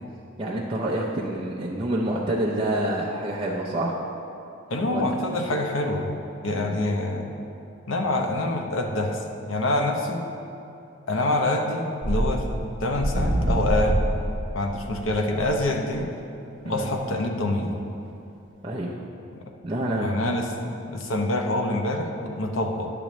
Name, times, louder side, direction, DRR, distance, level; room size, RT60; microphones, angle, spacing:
voice 1, 0.4-4.0 4.9-5.1 6.5-6.8 16.6-16.9 18.6-19.0 19.6-20.2, right 1 dB, 25° right, -5 dB, 0.5 m, -27 dB
voice 2, 4.7-6.1 6.4-7.3 7.9-10.2 11.1-14.0 14.5-16.1 16.6-17.7 20.0-22.9, left 1 dB, 80° left, 3 dB, 0.8 m, -26 dB
sound 1, 12.0-16.1, right 1 dB, 60° right, 0.8 m, -26 dB
9.9 x 6.8 x 3.1 m, 2.7 s
head